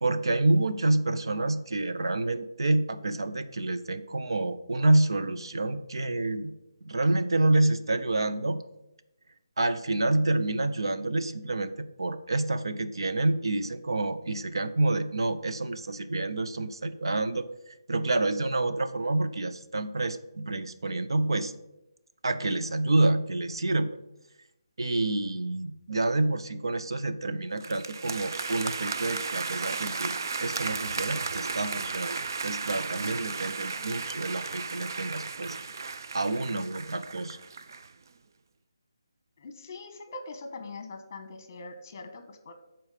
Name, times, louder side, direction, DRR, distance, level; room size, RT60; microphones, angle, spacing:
voice 1, 0.0-6.5 6.9-8.6 9.6-21.5 22.2-24.0 24.8-30.1 30.4-32.2 32.4-35.6 36.1-37.4, right 2 dB, 80° right, 10 dB, 0.8 m, -28 dB
sound 1, 27.6-37.9, right 4 dB, 50° right, 0.5 m, -35 dB
voice 2, 39.4-42.5, left 3 dB, 30° left, 7 dB, 1.3 m, -42 dB
12.5 x 4.5 x 5.1 m, 0.91 s
hypercardioid pair, 170°, 2 cm